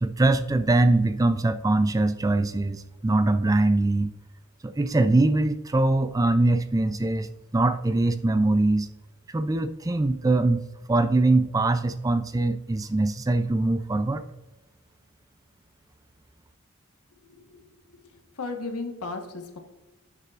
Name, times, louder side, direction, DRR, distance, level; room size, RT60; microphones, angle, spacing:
voice 1, 0.0-4.1 4.6-7.3 7.5-8.9 9.3-14.2, right 2 dB, 15° right, 11 dB, 0.3 m, -22 dB
voice 2, 18.4-19.6, left 3 dB, 80° left, 4 dB, 1.4 m, -34 dB
10.5 x 8.3 x 2.5 m, 1.1 s
head